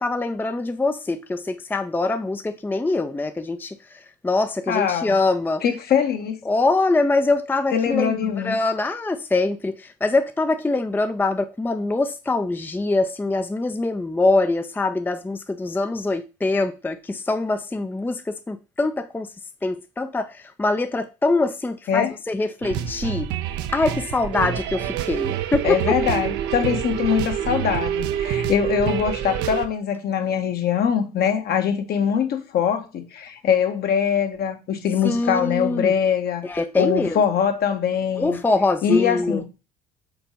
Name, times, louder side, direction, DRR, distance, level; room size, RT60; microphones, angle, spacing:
voice 1, 0.0-5.6 6.5-19.3 19.6-23.3 23.7-26.0 35.0-35.9 36.4-37.2 38.1-39.4, left 2 dB, 10° left, 0.5 m, -24 dB
voice 2, 4.7-5.2 5.6-6.4 7.7-8.5 21.9-22.1 25.6-36.4 36.8-38.4 38.8-39.4, left 8 dB, 55° left, 1.2 m, -22 dB
sound 1, 22.6-29.7, right 10 dB, 65° right, 0.7 m, -26 dB
4.6 x 3.9 x 5.3 m
hypercardioid pair, 55°, 20 cm